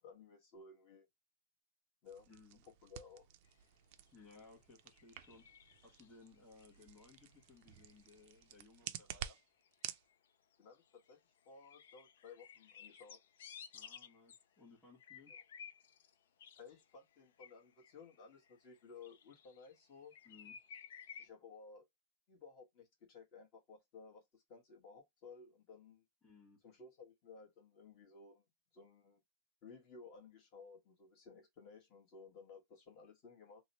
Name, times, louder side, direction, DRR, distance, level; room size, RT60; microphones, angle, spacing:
voice 1, 0.0-1.1 2.0-2.3 2.6-3.3 10.6-11.2 11.4-13.2 16.6-20.1 21.2-21.8 22.3-26.0 26.6-28.4 28.7-29.2 29.6-33.6, left 4 dB, 40° left, 1.2 m, -57 dB
sound 1, 2.0-10.0, right 11 dB, 50° right, 0.4 m, -51 dB
voice 2, 2.3-2.6 4.1-5.4 5.8-9.4 13.7-15.3 20.2-20.6 26.2-26.6, left 4 dB, 10° left, 1.2 m, -61 dB
sound 2, 4.1-4.2 5.0-6.3 6.6-7.4 7.7-8.4 9.3-10.3 10.5-11.2 11.5-14.4 15.0-16.1 16.4-19.8 20.1-21.3, left 7 dB, 90° left, 0.4 m, -56 dB
2.9 x 2.0 x 4.0 m
supercardioid pair, 165°, 0 cm